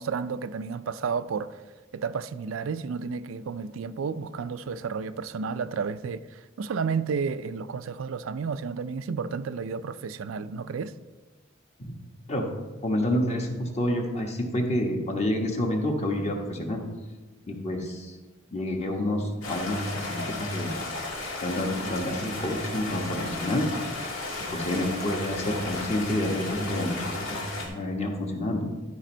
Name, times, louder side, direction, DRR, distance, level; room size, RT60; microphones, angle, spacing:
voice 1, 0.0-1.6 1.9-10.9, right 5 dB, 90° right, 0.4 m, -32 dB
voice 2, 12.8-16.8 17.5-18.2 18.5-20.8 21.4-24.2 24.5-28.7, left 1 dB, 35° left, 1.3 m, -29 dB
Stream, 19.4-27.7, left 2 dB, 85° left, 2.0 m, -34 dB
11.5 x 5.1 x 4.4 m
head